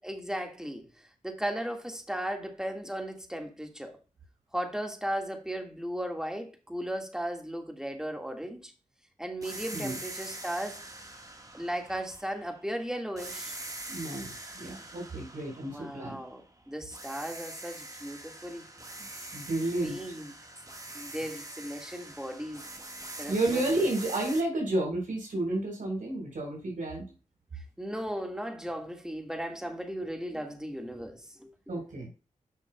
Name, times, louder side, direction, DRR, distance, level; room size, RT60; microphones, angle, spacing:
voice 1, 0.0-4.0 4.5-8.7 9.2-10.8 11.5-13.6 15.7-18.7 19.8-20.3 20.9-22.7 23.2-23.8 27.5-31.5, equal, 5° right, 1.8 m, -36 dB
sound 1, 9.4-12.7 13.2-16.5 16.9-24.4, right 2 dB, 25° right, 1.6 m, -44 dB
voice 2, 13.9-16.2 19.0-20.0 23.3-27.1 31.7-32.1, right 2 dB, 85° right, 4.1 m, -31 dB
10.0 x 6.0 x 2.3 m
cardioid pair, 60°, 13 cm